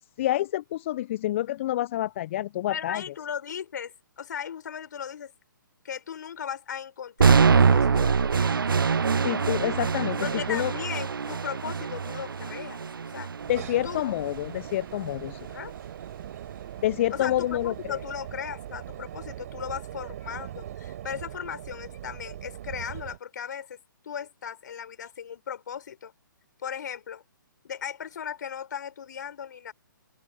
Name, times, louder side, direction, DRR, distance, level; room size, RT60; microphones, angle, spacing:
voice 1, 0.2-3.0 9.2-10.7 13.5-15.5 16.8-18.0, left 14 dB, 35° left, 0.5 m, -28 dB
voice 2, 2.7-5.3 5.8-8.6 10.2-12.8 13.1-13.3 13.8-14.2 15.5-15.8 17.1-23.8 24.0-26.1 26.6-27.2 27.6-29.7, left 8 dB, 60° left, 3.8 m, -37 dB
sound 1, 7.2-15.2, right 5 dB, 90° right, 0.4 m, -24 dB
sound 2, 13.4-23.2, right 12 dB, 45° right, 4.8 m, -40 dB
figure-of-eight pair, 140°, 11 cm